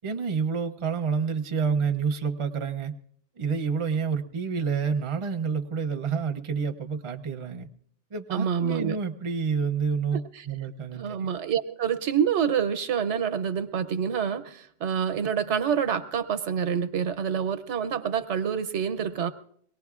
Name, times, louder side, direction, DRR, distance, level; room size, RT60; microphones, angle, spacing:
voice 1, 0.0-2.9 3.4-7.7 8.1-10.2 10.5-11.3, right 6 dB, 35° right, 6 dB, 0.6 m, -28 dB
voice 2, 8.3-9.0 10.1-10.5 10.9-19.3, right 7 dB, 90° right, 12 dB, 1.1 m, -27 dB
23.0 x 18.0 x 2.4 m, 0.66 s
omnidirectional pair, 1.2 m